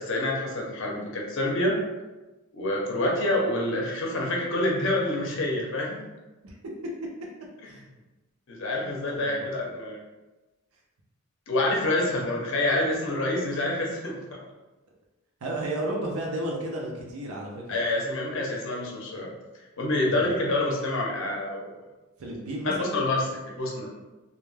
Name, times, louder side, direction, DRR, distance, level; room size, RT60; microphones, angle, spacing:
voice 1, 0.0-1.8 2.5-6.0 8.5-10.0 11.5-14.4 17.7-19.3 19.8-21.6 22.6-23.9, left 1 dB, 60° left, -1 dB, 0.6 m, -27 dB
voice 2, 9.0-9.5 15.4-17.8 20.0-20.4 22.2-23.0, right 1 dB, 75° right, -1 dB, 0.5 m, -33 dB
2.2 x 2.1 x 3.1 m, 1.1 s
head